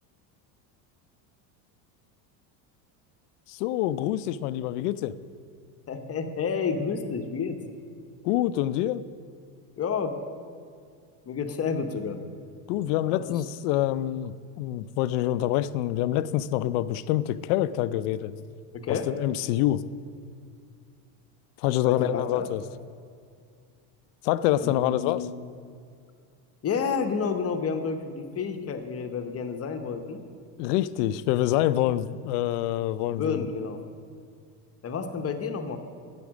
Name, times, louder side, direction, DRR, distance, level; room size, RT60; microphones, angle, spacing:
voice 1, 3.5-5.1 8.2-9.0 12.7-18.3 18.9-19.8 21.6-22.6 24.2-25.3 30.6-33.5, left 13 dB, 80° left, 16 dB, 0.5 m, -26 dB
voice 2, 5.9-7.6 9.8-10.1 11.3-12.2 13.1-13.4 18.7-19.1 21.8-22.5 24.6-25.3 26.6-30.2 33.1-33.8 34.8-35.8, left 5 dB, 30° left, 7 dB, 0.8 m, -30 dB
8.6 x 8.5 x 6.2 m, 2.2 s
supercardioid pair, 110°, 46 cm